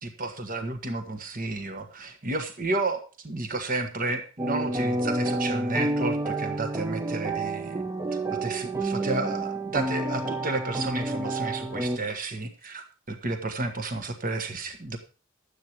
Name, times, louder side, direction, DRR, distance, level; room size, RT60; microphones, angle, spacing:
voice 1, 0.0-7.8 8.4-15.0, right 2 dB, 45° right, 7 dB, 1.3 m, -32 dB
sound 1, 4.4-12.0, right 2 dB, 15° right, 0.6 m, -29 dB
11.5 x 8.4 x 4.5 m, 0.37 s
head